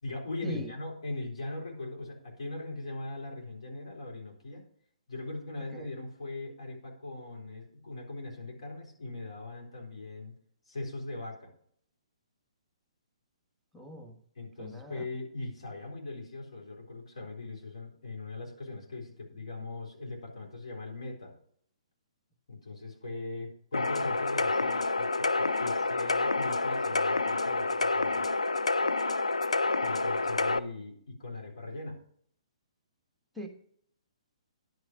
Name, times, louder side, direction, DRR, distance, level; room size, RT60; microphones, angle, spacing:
voice 1, 0.0-4.6 5.1-10.3 10.7-11.5 14.4-21.3 22.5-28.2 29.8-32.0, left 2 dB, 65° left, -1 dB, 4.0 m, -40 dB
voice 2, 13.7-14.2 14.6-15.0 33.3-33.5, equal, ahead, 2 dB, 1.3 m, -41 dB
sound 1, 23.7-30.6, left 3 dB, 85° left, 0.5 m, -28 dB
10.5 x 5.7 x 6.2 m, 0.62 s
figure-of-eight pair, 125°, 3 cm